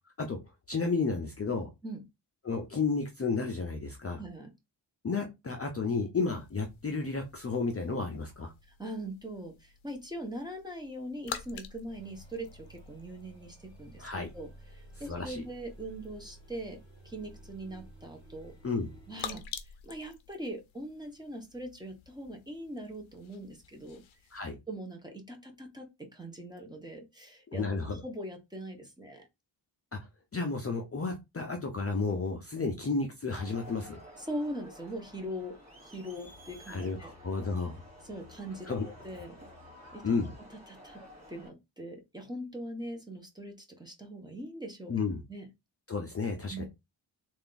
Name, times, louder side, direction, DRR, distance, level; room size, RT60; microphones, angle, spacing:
voice 1, 0.7-1.7 2.4-4.2 5.0-8.5 14.0-14.3 15.1-15.4 18.6-18.9 24.3-24.6 27.5-28.0 29.9-30.0 30.3-34.0 36.7-37.8 38.7-38.9 40.0-40.3 44.9-45.2 45.9-46.7, left 4 dB, 30° left, 3 dB, 0.5 m, -32 dB
voice 2, 4.2-4.5 8.7-14.1 14.3-16.8 17.0-18.5 19.1-19.4 19.8-24.0 24.7-27.7 28.0-29.2 34.2-35.6 35.8-37.1 38.0-39.4 39.9-40.1 40.7-41.0 41.3-44.9 45.3-45.5 46.5-46.7, right 1 dB, 10° right, 2 dB, 0.8 m, -41 dB
sound 1, 6.1-24.5, left 8 dB, 85° left, 0.7 m, -49 dB
sound 2, 11.9-19.4, right 1 dB, 10° left, 1.1 m, -53 dB
Crowd, 33.3-41.5, left 1 dB, 35° right, 2.0 m, -52 dB
3.3 x 2.5 x 3.8 m, 0.22 s
wide cardioid pair, 160°, 46 cm